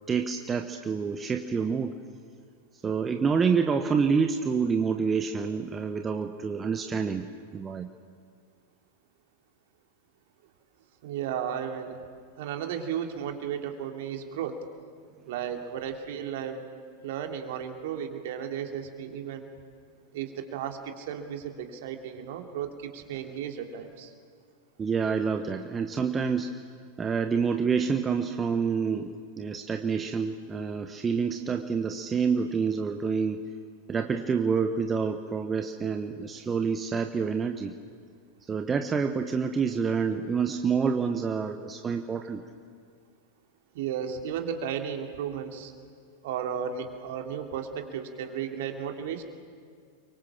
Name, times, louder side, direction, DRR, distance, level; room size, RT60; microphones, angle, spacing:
voice 1, 0.1-1.9 2.8-7.3 7.5-7.9 24.8-26.5 27.0-33.4 33.9-37.7 38.5-42.4, right 5 dB, 20° right, 6 dB, 1.2 m, -27 dB
voice 2, 11.0-12.0 12.4-14.6 15.3-16.7 17.0-19.5 20.1-24.1 43.7-45.7 46.2-49.2, right 8 dB, 50° right, 4 dB, 3.1 m, -34 dB
29.5 x 24.0 x 7.4 m, 2.1 s
figure-of-eight pair, 90°, 0 cm